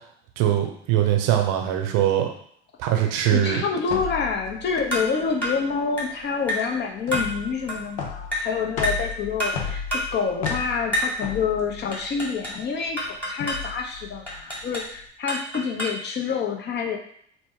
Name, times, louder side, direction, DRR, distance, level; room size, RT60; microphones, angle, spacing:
voice 1, 0.4-2.3 2.8-3.6, right 11 dB, 55° right, 3 dB, 0.7 m, -21 dB
voice 2, 3.3-9.8 10.1-17.0, left 5 dB, 30° left, 2 dB, 0.7 m, -27 dB
sound 1, 3.8-15.0, left 6 dB, 70° left, 0.7 m, -35 dB
sound 2, 4.9-5.1 5.4-5.6 6.0-6.2 6.5-6.7 7.1-7.3 7.7-7.9 8.3-8.5 8.8-9.1 9.4-9.6 9.9-10.1 10.5-10.6 10.9-11.2 11.9-12.6 13.0-13.7 14.3-14.9 15.3-16.1, equal, 5° left, 1.4 m, -28 dB
3.0 x 2.1 x 3.6 m, 0.65 s
figure-of-eight pair, 70°, 35 cm